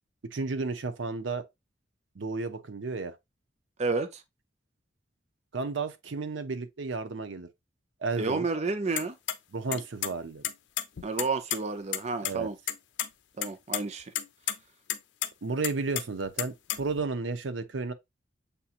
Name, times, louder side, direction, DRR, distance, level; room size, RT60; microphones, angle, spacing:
voice 1, 0.3-1.4 2.2-3.2 5.5-7.5 8.0-8.5 9.5-10.4 12.2-12.5 15.4-17.9, right 3 dB, 80° right, 0.7 m, -32 dB
voice 2, 3.8-4.2 8.2-9.2 11.0-12.6 13.4-14.1, right 3 dB, 35° right, 0.5 m, -30 dB
sound 1, 9.0-9.3 9.7-10.1 10.4-11.6 11.9-12.0 12.2-12.3 12.7-13.1 13.4-13.8 14.1-14.5 14.9-15.3 15.6-17.0, left 11 dB, 70° left, 0.5 m, -31 dB
6.8 x 2.9 x 2.4 m
head